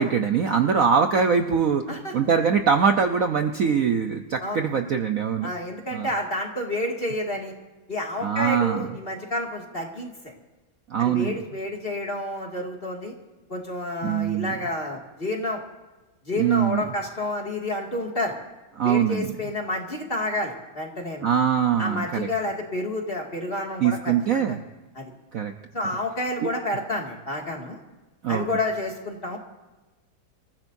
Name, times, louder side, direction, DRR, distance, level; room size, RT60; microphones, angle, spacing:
voice 1, 0.0-5.5 5.9-6.1 8.2-8.9 10.9-11.3 14.0-14.6 16.4-16.8 18.8-19.3 21.2-22.3 23.8-24.6 25.3-25.5 28.2-28.4, right 7 dB, 55° right, 5 dB, 1.0 m, -23 dB
voice 2, 5.4-7.5 7.9-10.3 11.0-13.1 13.5-15.6 16.3-18.4 18.8-21.3 21.8-24.6 24.9-25.1 25.7-27.8 28.3-29.4, left 1 dB, 30° left, 0 dB, 2.3 m, -29 dB
27.5 x 15.0 x 2.7 m, 1.1 s
omnidirectional pair, 2.1 m